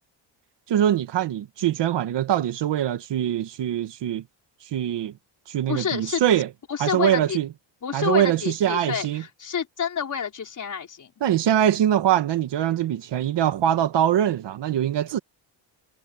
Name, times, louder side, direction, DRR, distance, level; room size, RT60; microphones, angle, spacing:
voice 1, 0.7-4.2 4.7-5.1 5.5-6.5 6.8-7.5 7.9-9.2 11.2-15.2, right 10 dB, 65° right, 1.6 m, -23 dB
voice 2, 5.7-6.2 6.7-7.4 7.8-11.1, left 7 dB, 40° left, 5.5 m, -28 dB
cardioid pair, 145°, 46 cm